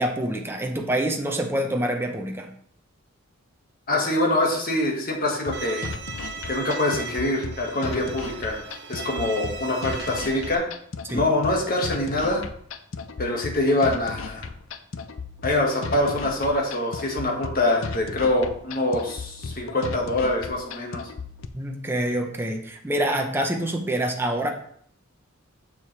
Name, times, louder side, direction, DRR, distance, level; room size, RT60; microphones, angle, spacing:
voice 1, 0.0-2.5 11.0-11.2 21.5-24.5, right 1 dB, 10° right, 2 dB, 0.8 m, -26 dB
voice 2, 3.9-5.8 6.5-8.6 8.9-10.6 11.1-12.4 13.2-14.5 15.4-21.0, left 1 dB, 45° left, 0 dB, 1.8 m, -24 dB
sound 1, 5.5-21.5, left 4 dB, 65° left, 0.6 m, -36 dB
Bowed string instrument, 5.5-10.6, right 4 dB, 55° right, 0.7 m, -37 dB
6.9 x 6.9 x 3.4 m, 0.62 s
head